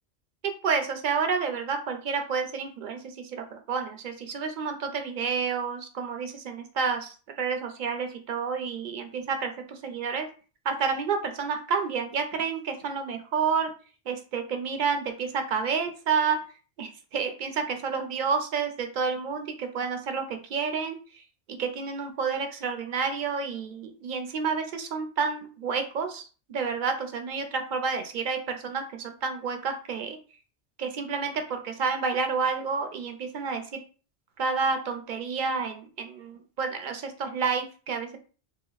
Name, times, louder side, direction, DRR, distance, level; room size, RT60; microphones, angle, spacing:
voice 1, 0.6-10.3 10.6-13.7 14.1-16.4 16.8-21.2 21.5-26.2 26.5-30.2 30.8-33.6 34.4-38.2, right 5 dB, 55° right, 6 dB, 0.6 m, -30 dB
3.5 x 2.0 x 3.9 m, 0.37 s
omnidirectional pair, 1.2 m